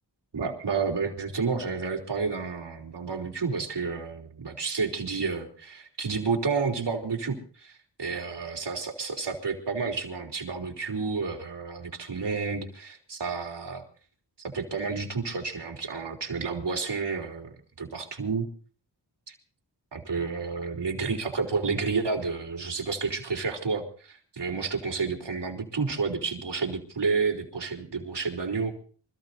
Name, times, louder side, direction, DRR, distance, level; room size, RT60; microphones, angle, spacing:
voice 1, 0.3-13.8 14.4-18.5 19.3-19.4 19.9-28.7, right 4 dB, 75° right, 1 dB, 3.4 m, -30 dB
27.0 x 14.5 x 2.7 m, 0.41 s
cardioid pair, 55°, 42 cm